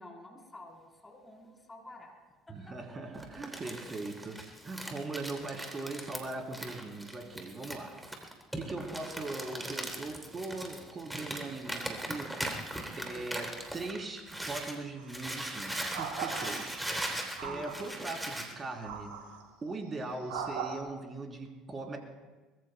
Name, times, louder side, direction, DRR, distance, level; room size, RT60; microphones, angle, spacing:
voice 1, 0.0-2.1 2.5-3.0 5.3-5.4 7.6-8.0 8.4-8.6 13.0-13.2 17.4-17.7, left 1 dB, 20° left, 0 dB, 4.1 m, -51 dB
voice 2, 2.5-8.1 8.6-12.4 13.0-19.2 19.6-22.0, right 3 dB, 30° right, 1 dB, 3.8 m, -40 dB
Crumpling crinkling, 3.2-14.8 15.1-18.5, right 1 dB, 5° right, 3.3 m, -39 dB
sound 1, 15.0-15.2 15.9-16.9 17.4-18.0 18.8-19.4 20.3-20.8, right 6 dB, 70° right, 2.9 m, -38 dB
24.0 x 21.0 x 2.3 m, 1.2 s
hypercardioid pair, 65°, 0 cm